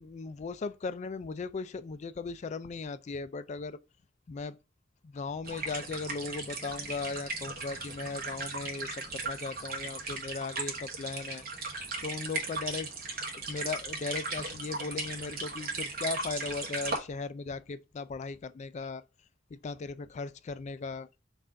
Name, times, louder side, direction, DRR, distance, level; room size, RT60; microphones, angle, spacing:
voice 1, 0.0-3.8 4.3-4.6 5.0-11.4 12.0-12.9 13.5-19.0 19.5-21.1, left 4 dB, 35° left, 0.3 m, -37 dB
sound 1, 5.4-17.0, right 3 dB, 50° right, 1.1 m, -37 dB
5.6 x 2.4 x 3.7 m
head